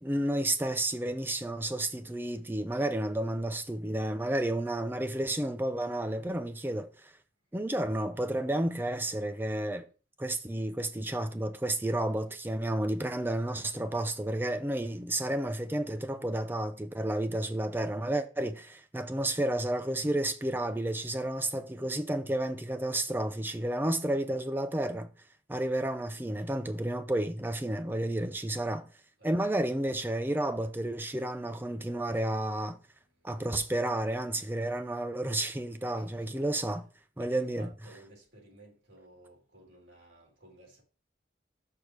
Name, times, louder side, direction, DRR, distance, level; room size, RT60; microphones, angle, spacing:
voice 1, 0.0-7.1 7.5-9.9 10.2-25.1 25.5-28.9 29.2-32.8 33.2-36.9 37.2-37.7, right 1 dB, 10° right, 0.5 m, -31 dB
voice 2, 31.9-32.4 35.9-36.4 37.2-40.8, right 1 dB, 85° right, 3.6 m, -55 dB
6.5 x 3.4 x 6.0 m
head